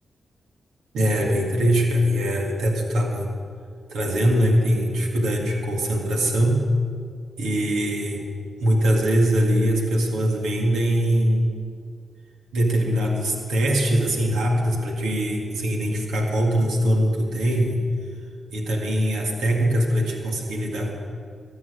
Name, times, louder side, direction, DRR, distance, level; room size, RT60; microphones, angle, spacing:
voice 1, 0.9-3.3 3.9-6.6 7.4-8.3 8.6-11.5 12.5-17.8 18.5-20.9, equal, 90° right, -1 dB, 2.2 m, -22 dB
14.0 x 8.0 x 9.8 m, 2.2 s
supercardioid pair, 45°, 0 cm